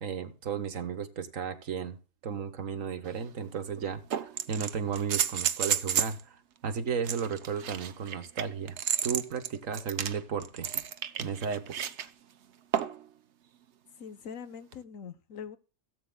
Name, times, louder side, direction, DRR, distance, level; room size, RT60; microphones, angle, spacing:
voice 1, 0.0-2.0 2.2-10.8 11.2-11.9, right 6 dB, 80° right, 1.6 m, -34 dB
sound 1, 3.0-3.1 4.1-6.2 7.0-12.1 12.7-13.1 14.7-14.8, right 9 dB, 60° right, 1.0 m, -31 dB
voice 2, 14.0-15.6, left 7 dB, 85° left, 1.4 m, -43 dB
17.5 x 8.5 x 2.3 m
omnidirectional pair, 1.4 m